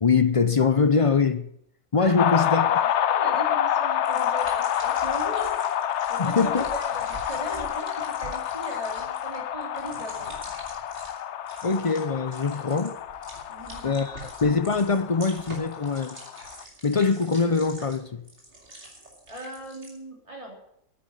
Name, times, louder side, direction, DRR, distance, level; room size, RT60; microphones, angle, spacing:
voice 1, 0.0-1.5 1.9-2.7 6.2-6.6 11.6-13.0 13.8-16.2 16.8-18.2, left 4 dB, 40° left, 0.5 m, -23 dB
voice 2, 2.0-5.6 6.1-10.3 13.5-13.9 19.3-20.6, right 1 dB, 25° right, 3.3 m, -38 dB
sound 1, 2.2-16.6, left 10 dB, 65° left, 0.9 m, -28 dB
sound 2, 4.0-11.2 11.5-12.0 12.3-19.9, right 2 dB, 55° right, 3.4 m, -45 dB
9.5 x 9.5 x 9.6 m
omnidirectional pair, 1.4 m